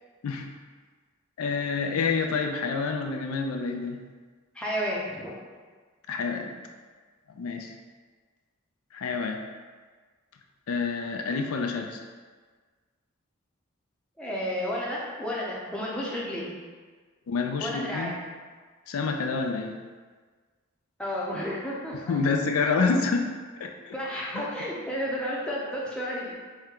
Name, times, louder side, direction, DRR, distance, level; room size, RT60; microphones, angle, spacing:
voice 1, 1.4-4.0 6.1-6.7 7.4-7.7 8.9-9.4 10.7-12.0 17.3-18.1 18.9-19.8 22.1-23.3 23.6-23.9, left 4 dB, 85° left, 3 dB, 0.4 m, -28 dB
voice 2, 4.5-5.4 14.2-16.6 17.6-18.2 21.0-22.2 23.9-26.3, equal, 5° left, -5 dB, 0.6 m, -32 dB
4.3 x 2.1 x 3.7 m, 1.5 s
head